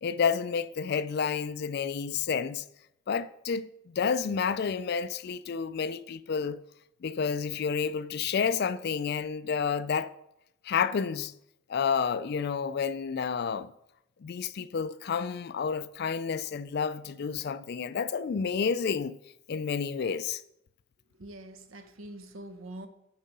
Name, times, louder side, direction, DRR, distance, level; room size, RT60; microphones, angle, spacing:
voice 1, 0.0-2.6 3.1-6.6 7.0-10.2 10.6-11.3 11.7-13.7 14.2-19.2 19.5-20.4, left 6 dB, 50° left, 0.3 m, -30 dB
voice 2, 21.2-22.9, right 1 dB, 70° right, 0.9 m, -44 dB
9.3 x 4.7 x 5.3 m
head